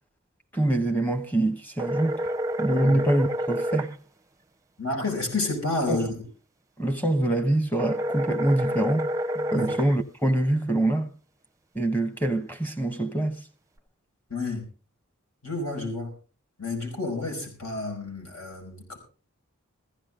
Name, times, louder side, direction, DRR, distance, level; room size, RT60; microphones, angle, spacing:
voice 1, 0.5-2.2 2.6-4.0 5.9-6.1 6.8-9.1 9.3-11.1 11.7-13.4, right 1 dB, 10° left, 1.0 m, -25 dB
sound 1, 1.8-3.9 7.8-9.9, equal, 15° right, 0.6 m, -29 dB
voice 2, 4.8-6.2 9.5-9.7 14.3-14.7 15.4-16.1 16.6-19.0, left 3 dB, 80° left, 5.5 m, -30 dB
15.5 x 15.5 x 3.7 m
head